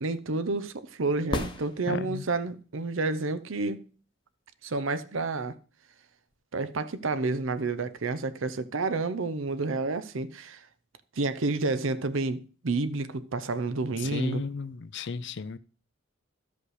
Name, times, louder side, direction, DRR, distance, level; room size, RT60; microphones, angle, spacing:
voice 1, 0.0-3.8 4.6-5.6 6.5-10.6 11.2-14.5, right 3 dB, 70° right, 0.7 m, -30 dB
sound 1, 1.3-2.4 6.3-6.4, left 1 dB, 20° left, 0.9 m, -34 dB
voice 2, 1.9-2.2 14.0-15.6, left 4 dB, 55° left, 0.5 m, -34 dB
12.5 x 5.3 x 4.8 m
head